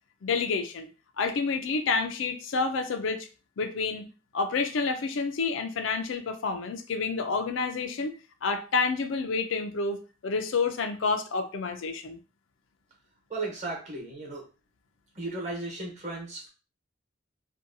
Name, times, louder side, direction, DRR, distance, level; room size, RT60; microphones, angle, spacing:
voice 1, 0.2-0.9 1.2-3.3 3.6-4.1 4.3-8.1 8.4-12.2, left 4 dB, 85° left, 7 dB, 0.4 m, -29 dB
voice 2, 13.3-14.4 15.1-16.5, right 2 dB, 40° right, -1 dB, 1.0 m, -35 dB
2.7 x 2.2 x 2.6 m, 0.34 s
head